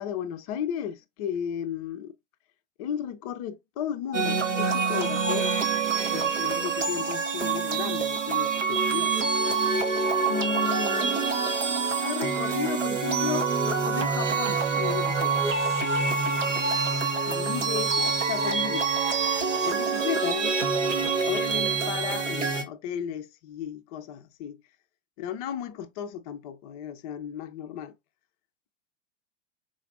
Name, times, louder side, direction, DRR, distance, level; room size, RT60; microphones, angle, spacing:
voice 1, 0.0-2.1 2.8-5.5 6.1-9.1 10.3-11.3 12.0-15.4 17.3-18.9 19.6-20.6 21.3-24.6 25.2-28.0, left 9 dB, 35° left, 0.4 m, -34 dB
sound 1, 4.1-22.6, right 5 dB, 85° right, 0.8 m, -26 dB
4.0 x 2.4 x 2.4 m
figure-of-eight pair, 90°, 36 cm